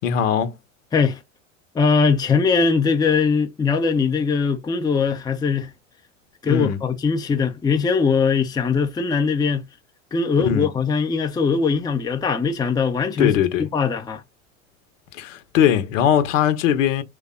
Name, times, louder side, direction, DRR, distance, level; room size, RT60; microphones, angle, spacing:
voice 1, 0.0-0.6 6.5-6.8 10.4-10.7 13.2-13.7 15.1-17.0, left 9 dB, 70° left, 0.9 m, -20 dB
voice 2, 1.7-5.7 6.4-9.7 10.1-14.2, left 5 dB, 10° left, 0.5 m, -21 dB
3.3 x 2.2 x 3.7 m
hypercardioid pair, 85°, 40 cm